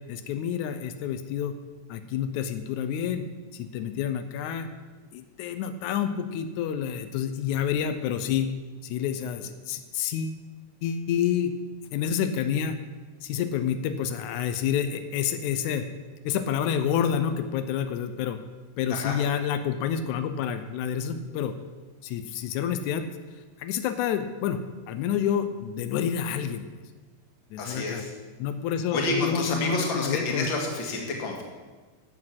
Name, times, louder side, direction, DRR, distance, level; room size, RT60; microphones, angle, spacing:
voice 1, 0.1-1.6 1.9-3.2 3.5-4.7 5.1-8.5 8.8-10.4 10.8-11.5 11.9-12.8 13.2-15.9 16.2-18.4 18.8-21.6 22.0-23.1 23.6-26.7 27.5-28.0 28.4-30.5, left 8 dB, 90° left, 9 dB, 2.1 m, -28 dB
voice 2, 27.6-28.1 28.9-31.4, left 2 dB, 45° left, 1 dB, 2.2 m, -29 dB
12.0 x 7.6 x 5.8 m, 1.3 s
omnidirectional pair, 3.3 m